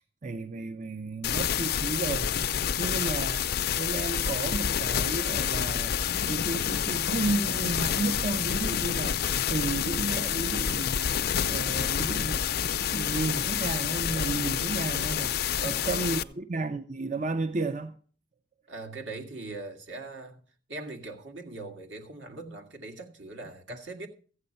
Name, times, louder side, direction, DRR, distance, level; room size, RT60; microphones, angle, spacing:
voice 1, 0.0-2.3 2.8-5.9 6.3-11.1 11.5-12.5 12.9-18.0, right 3 dB, 40° right, 0.5 m, -33 dB
sound 1, 1.2-16.2, left 9 dB, 55° left, 0.5 m, -28 dB
sound 2, 6.1-14.5, left 2 dB, 80° left, 0.8 m, -41 dB
voice 2, 15.6-16.3 18.7-20.4 20.7-24.1, right 2 dB, 75° right, 2.0 m, -41 dB
14.0 x 8.5 x 5.5 m
head